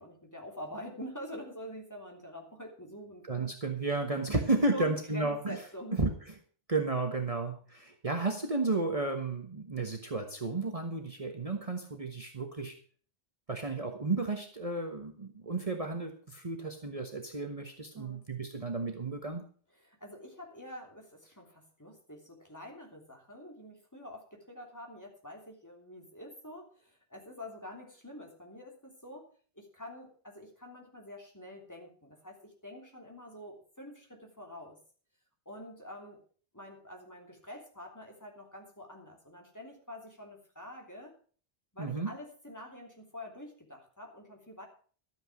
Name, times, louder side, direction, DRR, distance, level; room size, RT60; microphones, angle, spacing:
voice 1, 0.0-3.5 4.1-6.0 17.9-18.2 19.7-29.3 29.5-34.8 35.4-36.2 36.5-41.1 41.7-44.7, equal, 15° left, 1 dB, 3.2 m, -46 dB
voice 2, 3.3-5.6 6.0-6.1 6.7-12.8 13.5-19.4 41.8-42.1, right 3 dB, 35° right, 4 dB, 1.3 m, -33 dB
13.0 x 9.0 x 6.2 m, 0.43 s
omnidirectional pair, 1.1 m